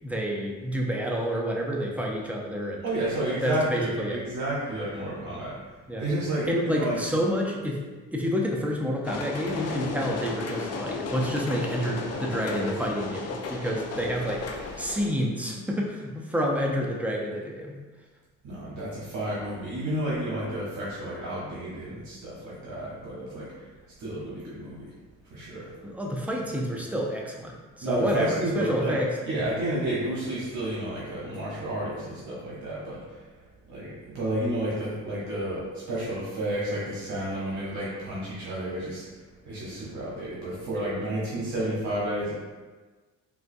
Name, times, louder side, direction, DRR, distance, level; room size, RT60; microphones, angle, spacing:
voice 1, 0.0-2.8 3.2-4.2 5.9-6.1 6.5-7.8 8.1-17.7 25.8-29.4, equal, 5° right, -1 dB, 0.5 m, -29 dB
voice 2, 2.8-5.5 6.0-7.0 18.4-23.5 24.0-24.9 25.3-25.9 27.8-29.0 29.2-33.3 33.7-39.0 39.4-42.3, right 1 dB, 70° right, -7 dB, 0.9 m, -31 dB
sound 1, 9.0-15.1, left 3 dB, 55° left, 0.5 m, -34 dB
3.7 x 2.3 x 2.5 m, 1.3 s
cardioid pair, 90°, 30 cm